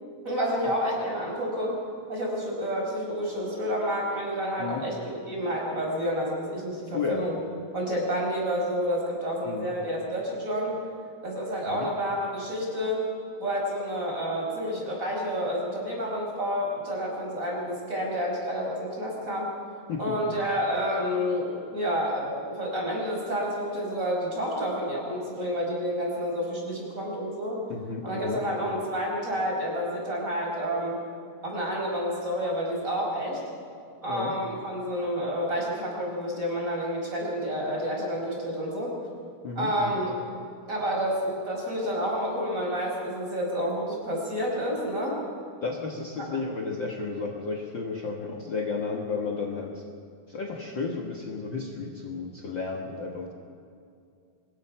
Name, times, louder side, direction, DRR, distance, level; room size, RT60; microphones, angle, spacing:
voice 1, 0.2-1.7 2.1-7.4 7.7-10.8 11.2-13.0 13.4-19.5 20.0-27.6 28.0-31.0 31.4-33.4 34.0-38.9 39.6-40.1 40.7-45.2 46.2-46.3, equal, 20° right, -2 dB, 5.4 m, -29 dB
voice 2, 6.9-7.3 9.4-9.7 11.7-11.9 19.9-20.3 27.7-28.4 34.1-34.3 39.4-40.0 45.6-49.8 50.3-53.3, left 4 dB, 65° left, 1 dB, 1.1 m, -33 dB
24.0 x 21.5 x 5.8 m, 2.4 s
omnidirectional pair, 4.5 m